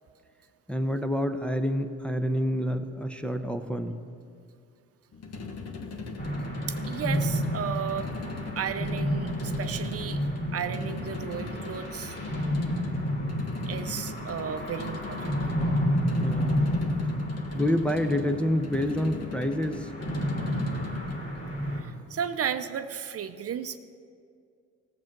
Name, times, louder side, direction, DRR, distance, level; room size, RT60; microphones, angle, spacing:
voice 1, 0.7-4.0 16.2-16.7 17.5-19.9, equal, 5° left, 4 dB, 0.7 m, -28 dB
sound 1, 5.1-21.3, left 4 dB, 55° left, 1.3 m, -40 dB
sound 2, 6.2-21.8, equal, 40° left, 2.6 m, -31 dB
voice 2, 6.7-8.1 8.6-10.2 10.5-12.2 13.7-15.4 21.7-23.8, right 8 dB, 50° right, 9 dB, 0.7 m, -34 dB
15.5 x 7.7 x 6.0 m, 2.3 s
cardioid pair, 90°, 30 cm